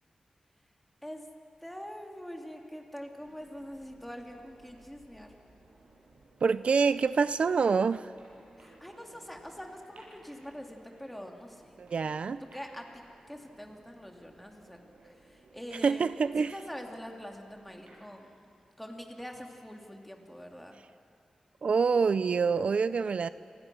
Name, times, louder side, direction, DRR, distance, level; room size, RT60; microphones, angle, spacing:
voice 1, 1.6-5.4 8.6-11.7 12.0-12.1 12.4-16.1 16.4-18.4 18.8-20.8, equal, 5° left, 2 dB, 2.8 m, -44 dB
sound 1, 3.1-18.0, right 2 dB, 90° right, 7.5 m, -59 dB
voice 2, 6.4-8.1 11.8-12.4 15.8-16.5 21.6-23.3, right 5 dB, 65° right, 14 dB, 0.5 m, -26 dB
27.5 x 26.5 x 6.2 m, 2.3 s
wide cardioid pair, 110°, 2 cm